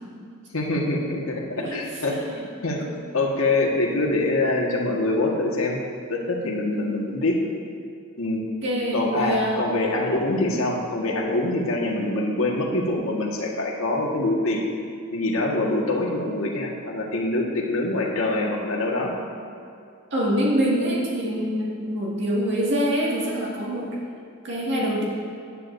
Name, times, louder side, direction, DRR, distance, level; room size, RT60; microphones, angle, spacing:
voice 1, 0.5-2.1 2.6-2.8 3.1-5.8 6.1-7.4 8.2-8.5 8.9-14.6 15.1-19.1, left 2 dB, 70° left, -1 dB, 1.6 m, -24 dB
voice 2, 2.1-2.4 2.8-2.9 6.7-6.9 8.6-9.6 20.1-24.0 24.4-25.0, equal, 55° right, -4 dB, 2.0 m, -25 dB
15.5 x 10.0 x 2.7 m, 2.4 s
head